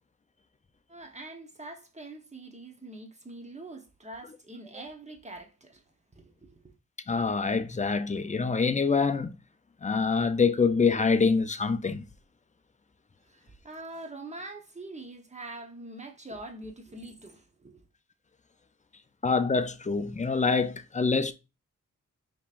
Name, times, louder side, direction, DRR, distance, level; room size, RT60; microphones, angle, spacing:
voice 1, 0.9-5.8 6.1-6.7 13.3-17.8, right 2 dB, 25° right, 1.0 m, -44 dB
voice 2, 7.1-9.4 9.8-12.0 19.2-21.3, left 4 dB, 25° left, 0.5 m, -25 dB
5.2 x 3.0 x 2.5 m
cardioid pair, 65°, 29 cm